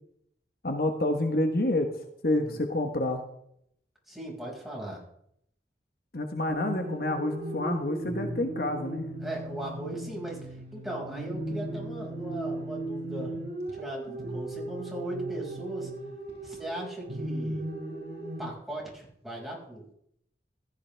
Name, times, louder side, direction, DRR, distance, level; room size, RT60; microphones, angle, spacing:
voice 1, 0.6-1.9 2.2-3.2 6.1-9.1, left 1 dB, 55° left, 5 dB, 1.2 m, -28 dB
voice 2, 4.1-5.0 9.2-13.4 13.7-15.9 16.4-17.6 18.4-20.0, right 1 dB, ahead, -4 dB, 5.5 m, -38 dB
sound 1, 6.5-18.5, right 1 dB, 65° right, 4.8 m, -36 dB
15.5 x 14.5 x 3.4 m, 0.72 s
head